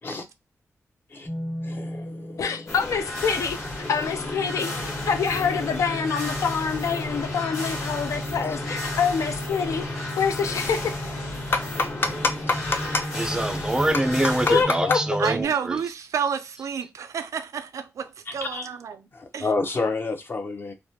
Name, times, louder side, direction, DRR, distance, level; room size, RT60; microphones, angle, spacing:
sound 1, 1.3-15.4, equal, 30° left, 1.1 m, -35 dB
voice 1, 1.6-2.7 4.7-5.1 8.4-8.6 11.5-13.1 13.9-14.0 18.3-18.7 19.1-20.7, left 3 dB, 45° left, 0.6 m, -29 dB
voice 2, 2.4-4.7 5.1-10.9 14.4-15.0, left 6 dB, 85° left, 0.4 m, -26 dB
sound 2, 2.7-14.6, left 2 dB, 70° left, 1.2 m, -34 dB
voice 3, 13.1-15.8, right 1 dB, 15° right, 0.4 m, -25 dB
voice 4, 15.2-19.1 19.3-19.5, right 7 dB, 85° right, 0.4 m, -30 dB
3.2 x 2.1 x 2.7 m
wide cardioid pair, 100°, 5 cm